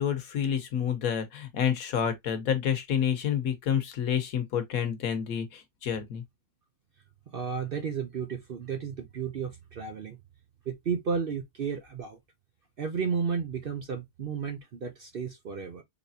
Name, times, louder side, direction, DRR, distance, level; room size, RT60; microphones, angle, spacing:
voice 1, 0.0-6.2, left 8 dB, 65° left, 1.3 m, -29 dB
voice 2, 7.3-10.2 10.7-12.2 12.8-15.8, right 6 dB, 55° right, 0.6 m, -33 dB
4.1 x 3.3 x 2.7 m
omnidirectional pair, 1.6 m